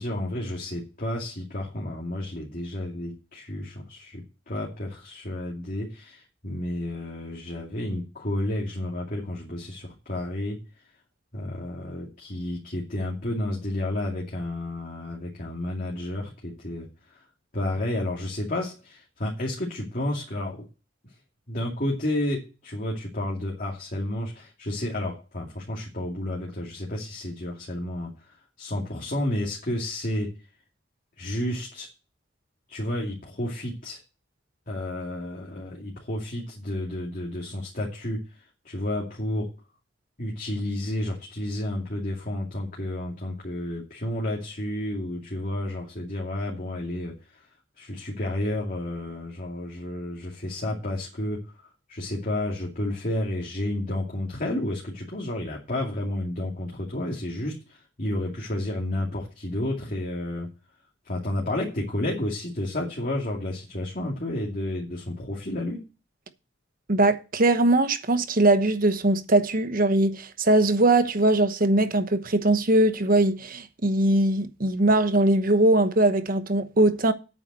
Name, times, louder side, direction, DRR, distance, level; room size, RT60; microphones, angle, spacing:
voice 1, 0.0-10.6 11.3-17.2 17.5-20.6 21.5-30.3 31.2-31.9 32.7-34.0 34.7-39.5 40.2-47.5 47.8-60.5 61.0-65.8, left 1 dB, 45° left, 2.6 m, -31 dB
voice 2, 66.9-77.1, right 2 dB, 50° right, 1.1 m, -21 dB
9.1 x 7.2 x 7.6 m
head